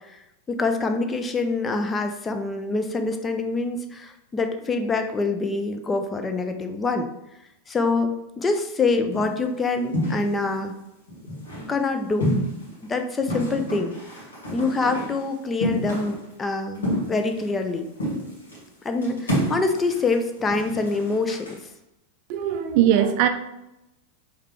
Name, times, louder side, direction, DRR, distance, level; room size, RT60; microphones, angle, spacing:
voice 1, 0.5-7.1 7.7-10.7 11.7-12.3 12.9-13.9 14.5-17.9 18.8-21.6, left 3 dB, 15° left, 6 dB, 0.5 m, -25 dB
sound 1, 9.1-9.4 9.9-10.6 11.1-11.8 12.2-12.8 13.3-15.3 15.6-16.3 16.8-17.7 18.0-18.6 19.0-21.6, equal, 70° left, 1.6 m, -29 dB
voice 2, 22.3-23.3, right 10 dB, 45° right, 7 dB, 0.4 m, -20 dB
4.9 x 3.2 x 3.1 m, 0.88 s
figure-of-eight pair, 90°, 0 cm